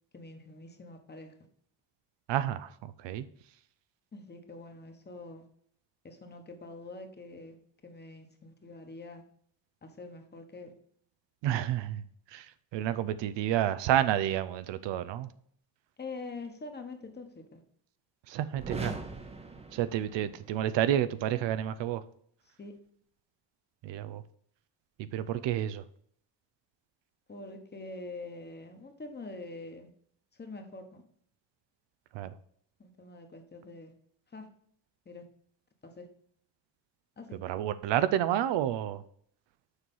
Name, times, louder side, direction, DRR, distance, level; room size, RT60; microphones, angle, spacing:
voice 1, 0.1-1.3 4.1-5.5 6.0-7.6 7.8-9.2 9.8-10.7 16.0-17.6 22.6-22.8 27.3-29.9 30.3-31.0 32.8-33.9 34.3-34.5 35.0-35.2 35.8-36.1 37.2-37.4, left 3 dB, 25° left, 1.3 m, -45 dB
voice 2, 2.3-3.3 11.4-15.3 18.3-19.0 19.7-22.0 23.8-24.2 25.0-25.8 32.1-32.4 37.4-39.0, right 11 dB, 80° right, 0.6 m, -30 dB
sound 1, 18.6-20.6, right 3 dB, 15° right, 0.8 m, -41 dB
6.6 x 4.7 x 5.4 m
cardioid pair, 120°, 43 cm